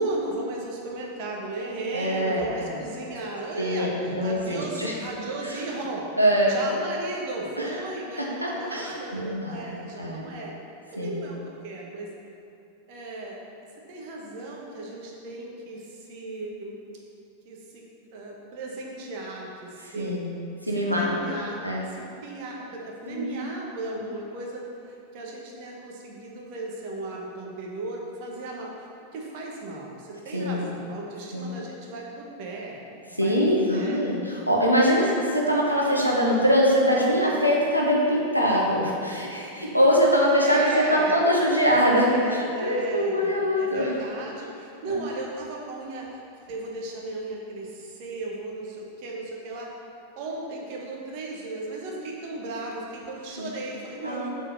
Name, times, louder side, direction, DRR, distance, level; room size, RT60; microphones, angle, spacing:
voice 1, 0.0-6.0 6.5-10.5 10.9-11.4 11.6-12.1 12.9-13.4 13.9-16.8 17.4-17.8 18.1-20.2 20.9-21.6 21.9-24.6 25.1-32.8 33.2-34.0 34.7-35.1 40.3-41.2 41.7-46.2 46.5-49.7 50.2-54.3, right 2 dB, 45° right, -2 dB, 1.4 m, -35 dB
voice 2, 1.9-2.8 3.6-4.9 5.4-5.6 6.2-6.6 7.6-7.8 8.2-9.6 10.0-10.2 11.0-11.2 19.9-20.3 20.6-21.1 21.6-21.9 23.1-23.4 23.9-24.0 30.3-30.7 31.3-31.5 33.1-43.9 44.9-45.0 53.4-53.5 54.0-54.3, equal, 90° right, -4 dB, 1.0 m, -23 dB
6.9 x 4.4 x 5.9 m, 2.7 s
figure-of-eight pair, 90°, 0 cm